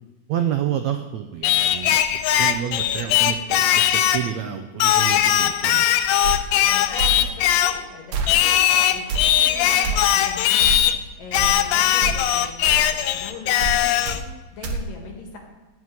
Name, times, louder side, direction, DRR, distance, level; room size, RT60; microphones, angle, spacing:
voice 1, 0.3-5.8, right 10 dB, 90° right, 7 dB, 1.5 m, -29 dB
Singing, 1.4-4.3 4.8-7.8 8.3-11.0 11.3-14.2, left 11 dB, 85° left, 2.4 m, -19 dB
sound 1, 6.2-6.4 7.0-7.2 8.1-8.3 9.1-9.2 9.8-10.0 10.6-10.8 11.3-11.5 12.0-12.2 12.6-12.8 13.6-13.8 14.0-14.2 14.6-14.8, right 4 dB, 60° right, 2.1 m, -26 dB
voice 2, 6.7-15.4, left 4 dB, 65° left, 1 dB, 3.6 m, -40 dB
15.5 x 6.1 x 9.7 m, 1.2 s
omnidirectional pair, 4.2 m